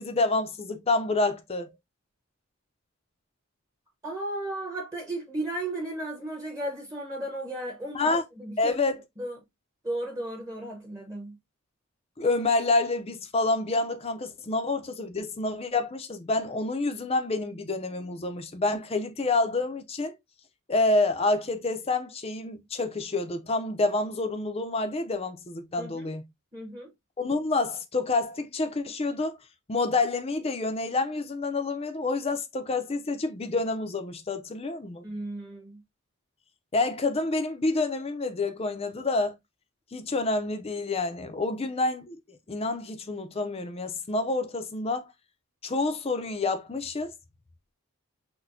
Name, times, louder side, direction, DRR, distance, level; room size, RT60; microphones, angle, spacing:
voice 1, 0.0-1.7 7.9-8.2 8.6-9.0 12.2-20.1 20.7-26.2 27.2-29.4 29.7-35.1 36.7-39.4 39.9-45.1 45.6-47.1, left 3 dB, 30° left, 0.5 m, -28 dB
voice 2, 4.0-8.8 9.2-9.4 9.8-11.4 25.8-26.1 26.5-26.9 35.0-35.8, right 1 dB, 15° right, 1.0 m, -35 dB
6.1 x 2.2 x 2.6 m
head